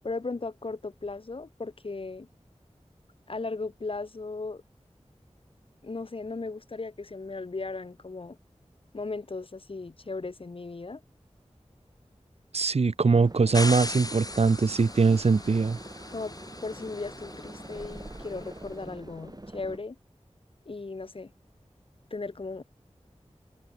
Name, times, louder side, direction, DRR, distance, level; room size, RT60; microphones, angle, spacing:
voice 1, 0.0-2.3 3.3-4.6 5.8-8.4 8.9-11.0 16.1-16.3 16.6-20.0 20.7-21.3 22.1-22.6, left 3 dB, 50° left, 0.6 m, -36 dB
voice 2, 12.5-15.8, right 4 dB, 60° right, 0.5 m, -22 dB
sound 1, 13.1-19.8, right 1 dB, 35° right, 3.8 m, -45 dB
sound 2, 13.5-18.7, left 2 dB, 30° left, 1.2 m, -38 dB
wide cardioid pair, 50°, 12 cm